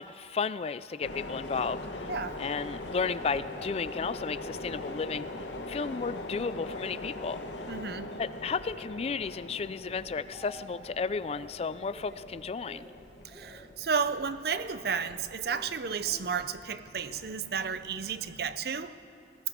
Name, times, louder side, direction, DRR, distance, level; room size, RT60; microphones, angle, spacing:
voice 1, 0.0-2.1 2.4-5.3 5.7-7.4 8.2-12.9, left 5 dB, 35° left, 16 dB, 0.3 m, -33 dB
sound 1, 1.0-18.5, left 2 dB, 75° left, 1.2 m, -42 dB
voice 2, 2.1-2.4 7.7-8.1 13.2-19.0, right 6 dB, 60° right, 12 dB, 0.6 m, -32 dB
Speech, 9.8-10.8 11.1-11.5 11.9-12.2 12.6-12.9 13.3-13.6 14.0-14.3 14.7-15.1 15.4-16.3 17.0-17.3, right 1 dB, 35° right, 2.2 m, -50 dB
19.5 x 17.5 x 3.6 m, 2.5 s
head